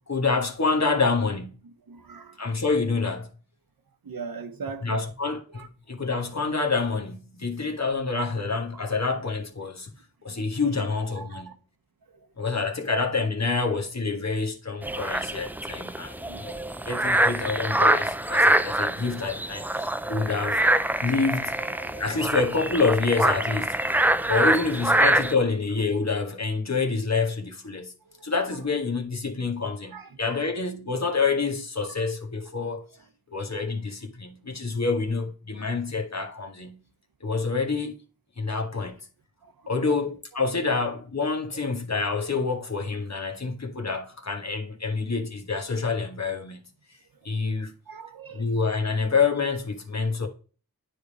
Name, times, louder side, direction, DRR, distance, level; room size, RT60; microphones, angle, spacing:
voice 1, 0.1-1.6 2.4-3.4 4.8-9.9 10.2-11.5 12.4-16.5 16.9-20.6 21.0-21.6 22.0-23.8 24.2-27.9 28.2-32.9 33.3-36.8 37.2-38.0 38.4-39.1 39.7-46.6 47.2-47.7 48.3-50.3, left 4 dB, 45° left, 1.3 m, -27 dB
voice 2, 1.6-2.6 4.0-5.1 5.5-5.7 8.2-8.3 8.7-9.3 10.3-11.5 12.1-12.3 16.1-17.2 19.3-19.5 21.5-22.7 24.2-24.8 28.0-28.7 29.9-30.5 31.8-32.0 32.9-33.1 33.4-33.8 34.6-34.7 35.9-36.0 36.4-36.5 38.8-38.9 39.4-40.0 40.6-40.8 41.6-42.1 42.4-42.5 47.1-47.3 47.9-48.5, right 5 dB, 75° right, 0.9 m, -44 dB
sound 1, 14.8-25.3, right 1 dB, 5° right, 0.3 m, -25 dB
9.4 x 3.5 x 4.1 m
wide cardioid pair, 50°, 36 cm